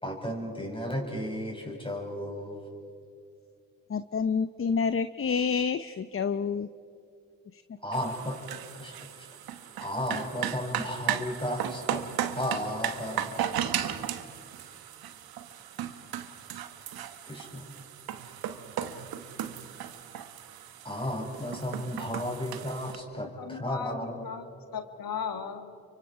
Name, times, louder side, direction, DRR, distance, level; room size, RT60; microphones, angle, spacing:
voice 1, 0.0-2.7 7.8-8.4 8.7-9.3 9.8-13.3 17.2-17.7 20.8-24.3, equal, 15° left, 1 dB, 6.4 m, -34 dB
voice 2, 3.9-6.7 7.5-7.6, left 6 dB, 35° left, 12 dB, 0.7 m, -28 dB
sound 1, 7.9-23.0, right 10 dB, 75° right, 1.2 m, -36 dB
voice 3, 23.2-24.5 24.7-25.7, left 7 dB, 70° left, 7 dB, 2.0 m, -37 dB
29.5 x 24.5 x 5.0 m, 2.5 s
supercardioid pair, 50°, 36 cm